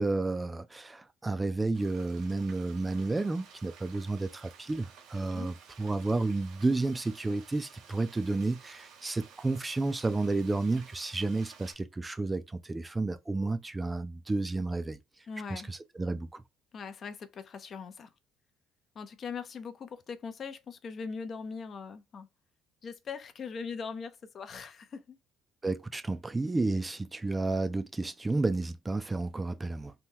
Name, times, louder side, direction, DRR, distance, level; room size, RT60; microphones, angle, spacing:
voice 1, 0.0-15.0 15.5-16.4 25.6-29.9, right 3 dB, 15° right, 0.4 m, -31 dB
Frying (food), 1.7-11.7, right 7 dB, 80° right, 0.7 m, -54 dB
voice 2, 15.3-15.7 16.7-18.1 19.0-22.3 22.8-25.2, left 5 dB, 45° left, 0.5 m, -41 dB
2.9 x 2.1 x 3.4 m
cardioid pair, 95°, 0 cm